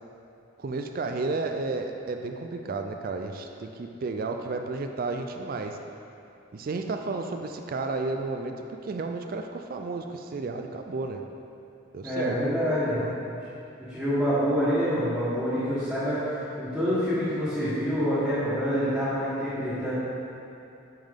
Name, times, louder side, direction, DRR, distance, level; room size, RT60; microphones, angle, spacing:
voice 1, 0.6-5.8 6.5-11.2 11.9-12.4 12.9-13.2, right 3 dB, 45° right, 5 dB, 0.3 m, -32 dB
voice 2, 12.0-13.3 13.9-19.9, equal, ahead, -16 dB, 1.6 m, -27 dB
8.9 x 5.3 x 3.7 m, 2.7 s
head